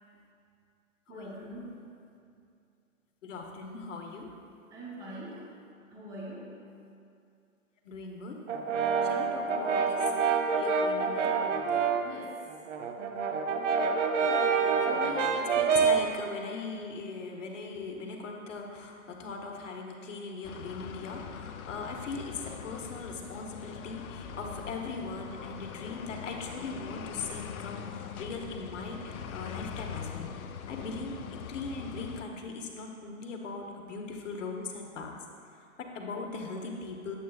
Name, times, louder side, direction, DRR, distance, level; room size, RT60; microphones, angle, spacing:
voice 1, 1.1-1.9 4.7-5.5 5.9-6.7 9.2-9.4 12.0-12.4, right 1 dB, 10° right, -5 dB, 0.7 m, -43 dB
voice 2, 3.2-4.3 7.8-8.4 9.0-10.1 10.5-11.3 14.6-31.1 31.5-35.1 35.8-37.2, left 4 dB, 60° left, 1 dB, 1.1 m, -40 dB
Brass instrument, 8.5-12.1 12.5-16.1, right 5 dB, 60° right, 0.7 m, -27 dB
sound 1, 20.4-32.2, left 8 dB, 85° left, 0.5 m, -42 dB
8.2 x 7.8 x 2.3 m, 2.4 s
hypercardioid pair, 140°, 41 cm